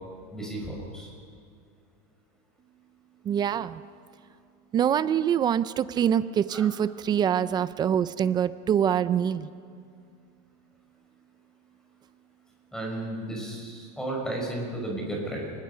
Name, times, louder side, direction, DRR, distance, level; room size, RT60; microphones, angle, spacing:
voice 1, 0.3-1.1 6.5-6.7 12.7-15.5, right 1 dB, 5° left, -1 dB, 5.5 m, -33 dB
voice 2, 3.3-3.8 4.7-9.5, right 9 dB, 20° right, 15 dB, 0.4 m, -25 dB
29.5 x 20.0 x 5.7 m, 2.3 s
supercardioid pair, 155°, 20 cm